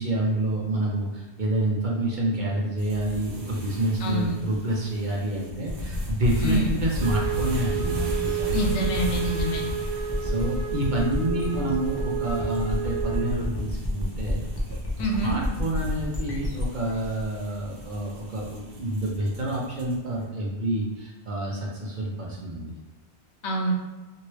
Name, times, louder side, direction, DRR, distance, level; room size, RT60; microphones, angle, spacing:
voice 1, 0.0-8.9 9.8-14.8 15.2-22.7, right 1 dB, 50° right, -3 dB, 0.7 m, -28 dB
sound 1, 2.8-20.1, equal, 70° right, 1.0 m, -39 dB
voice 2, 4.0-4.3 6.4-6.8 8.5-9.6 15.0-15.4 23.4-23.7, right 1 dB, 80° left, 1 dB, 0.9 m, -26 dB
sound 2, 5.6-18.3, left 1 dB, 30° left, 0.4 m, -31 dB
Wind instrument woodwind instrument, 7.0-13.4, right 9 dB, 20° right, 1.4 m, -31 dB
3.1 x 2.6 x 2.9 m, 1.1 s
omnidirectional pair, 1.2 m